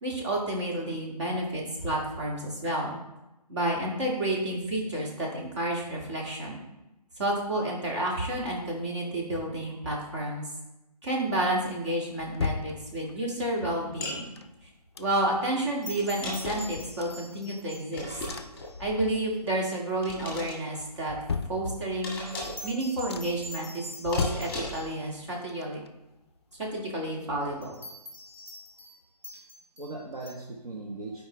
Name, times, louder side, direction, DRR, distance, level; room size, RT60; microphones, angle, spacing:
voice 1, 0.0-3.0 3.5-6.6 7.2-10.4 11.0-14.3 15.0-18.2 18.8-21.2 21.5-22.2 22.6-25.8 26.6-27.8, right 1 dB, 45° right, -2 dB, 2.1 m, -30 dB
sound 1, 11.6-13.4 14.1-15.5 15.9-16.0 16.2-17.9 18.3-19.5 19.8-20.3 20.7-22.2 22.6-22.7 23.1-23.6 24.0-25.2 25.5-27.3 27.6-27.7, left 5 dB, 40° left, 0.4 m, -37 dB
sound 2, 14.0-14.2 16.0-16.8 17.9-18.7 20.0-20.6 22.0-22.7 24.1-24.9, left 1 dB, 5° left, 1.5 m, -36 dB
sound 3, 15.6-18.8 19.1-19.2 22.1-25.0 27.6-28.9 29.2-30.3, equal, 25° right, 1.5 m, -45 dB
voice 2, 21.1-21.6 22.6-22.8 29.2-29.4 29.8-31.2, right 2 dB, 60° right, -1 dB, 1.1 m, -40 dB
11.0 x 4.8 x 3.3 m, 0.96 s
hypercardioid pair, 170°, 21 cm